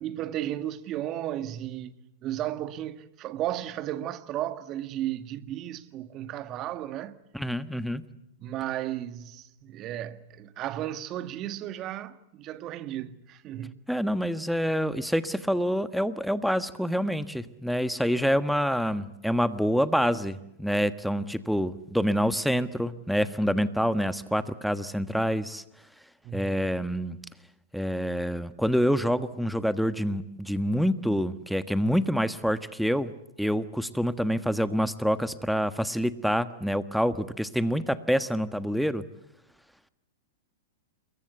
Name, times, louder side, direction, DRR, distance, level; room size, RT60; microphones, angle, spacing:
voice 1, 0.0-7.2 8.4-13.8 26.2-26.6, right 12 dB, 35° right, 1.8 m, -34 dB
voice 2, 7.3-8.0 13.9-25.6 26.3-27.2 27.7-33.1 33.4-39.0, equal, ahead, 1.4 m, -27 dB
28.0 x 23.0 x 8.2 m
hypercardioid pair, 120°, 0 cm